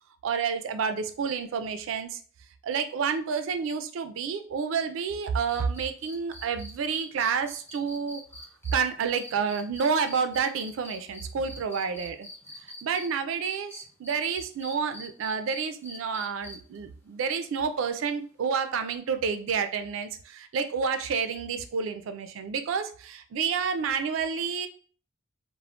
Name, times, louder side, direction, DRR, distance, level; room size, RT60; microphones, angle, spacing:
voice 1, 0.2-2.2 2.6-8.2 8.7-12.3 12.8-24.7, right 6 dB, 65° right, 9 dB, 0.3 m, -29 dB
sound 1, 5.5-13.1 13.4-16.8 18.4-18.5, left 1 dB, 10° left, 0.5 m, -44 dB
2.3 x 2.0 x 3.5 m, 0.42 s
head